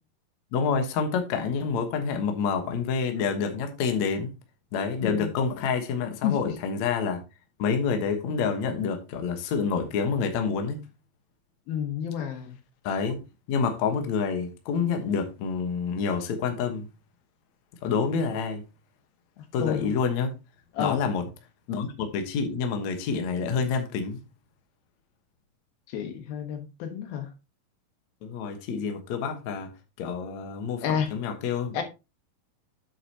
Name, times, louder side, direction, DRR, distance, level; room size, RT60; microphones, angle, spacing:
voice 1, 0.5-4.3 4.7-7.2 7.6-10.8 12.8-13.2 13.5-16.9 17.8-18.6 19.5-20.3 20.8-21.2 21.7-24.2 28.2-29.7 30.0-30.8 31.1-31.8, left 5 dB, 60° left, 2.1 m, -28 dB
voice 2, 5.0-5.3 6.2-6.4 11.7-12.6 19.4-19.9 20.7-21.0 25.9-27.3 30.8-31.1 31.7-31.8, left 8 dB, 75° left, 3.2 m, -30 dB
9.2 x 7.9 x 2.9 m
omnidirectional pair, 4.3 m